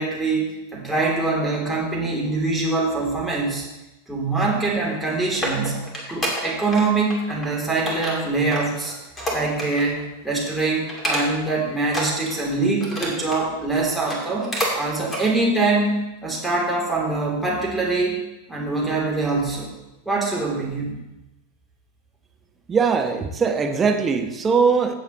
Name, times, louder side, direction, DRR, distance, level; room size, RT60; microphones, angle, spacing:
voice 1, 0.0-3.6 4.1-8.9 9.3-14.5 14.7-18.2 18.5-19.7 20.0-21.0, right 3 dB, 5° right, -4 dB, 3.1 m, -24 dB
sound 1, 4.9-6.8 7.1-7.5 7.9-10.0 10.3-10.5 10.9-11.5 11.9-13.5 13.9-14.8 15.1-15.2 15.8-15.9, equal, 15° left, 2.6 m, -29 dB
voice 2, 22.7-24.9, right 5 dB, 20° right, 4 dB, 1.1 m, -20 dB
16.5 x 7.2 x 3.1 m, 0.99 s
figure-of-eight pair, 90°, 0 cm